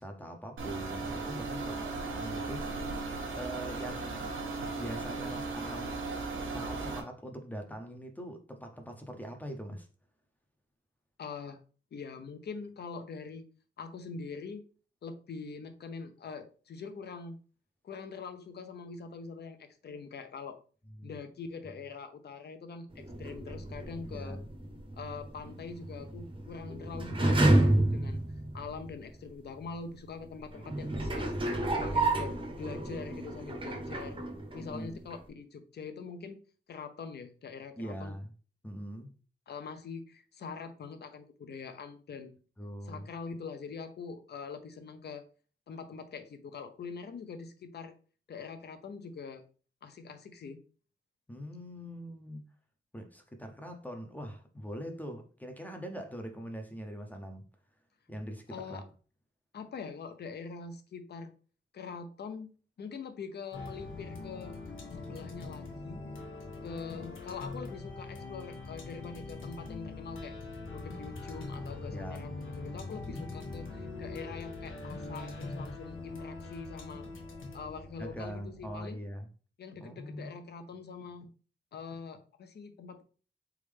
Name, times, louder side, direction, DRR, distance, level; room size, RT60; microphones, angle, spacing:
voice 1, 0.0-2.9 3.4-4.3 4.8-6.0 6.4-9.9 21.0-21.2 24.1-24.5 30.5-30.6 34.6-35.0 37.8-38.3 38.6-39.1 42.6-43.1 51.3-52.4 52.9-57.4 58.1-58.8 71.9-72.3 72.9-73.3 78.0-79.3 79.8-80.3, equal, 10° left, 0.6 m, -42 dB
sound 1, 0.6-7.0, right 3 dB, 85° right, 1.2 m, -36 dB
voice 2, 11.2-11.6 11.9-13.5 13.8-14.6 15.0-17.4 17.8-20.6 21.0-24.4 24.9-28.2 28.5-31.3 31.7-34.2 34.5-36.4 36.7-38.1 39.5-42.3 42.8-45.2 45.7-47.9 48.3-49.4 49.8-50.6 58.5-58.8 59.5-61.3 61.7-62.5 62.8-64.6 65.0-66.0 66.6-70.4 70.7-72.3 72.6-77.1 77.5-79.0 79.6-81.3 81.7-83.0, left 5 dB, 55° left, 0.6 m, -43 dB
sound 2, 22.9-29.0 29.6-29.7 30.5-34.8 35.1-35.2, right 1 dB, 25° right, 0.8 m, -30 dB
sound 3, 63.5-78.8, left 3 dB, 90° left, 1.2 m, -42 dB
4.2 x 3.5 x 3.3 m
wide cardioid pair, 165°, 20 cm